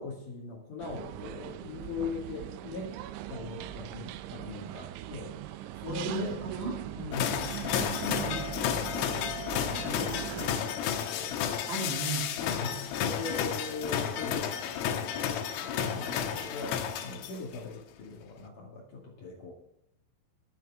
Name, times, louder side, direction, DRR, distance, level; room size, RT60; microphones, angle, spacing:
voice 1, 0.0-3.0 3.3-6.4 7.0-8.3 9.6-11.3 12.4-14.5 14.9-19.5, left 3 dB, 50° left, -3 dB, 2.9 m, -40 dB
sound 1, 0.8-10.6, right 12 dB, 85° right, 2.8 m, -40 dB
voice 2, 5.9-6.7 8.0-8.5 11.7-12.3, right 3 dB, 65° right, 0 dB, 4.4 m, -35 dB
sound 2, 7.1-17.6, left 9 dB, 80° left, 3.5 m, -32 dB
20.0 x 7.7 x 3.5 m, 0.82 s
omnidirectional pair, 5.9 m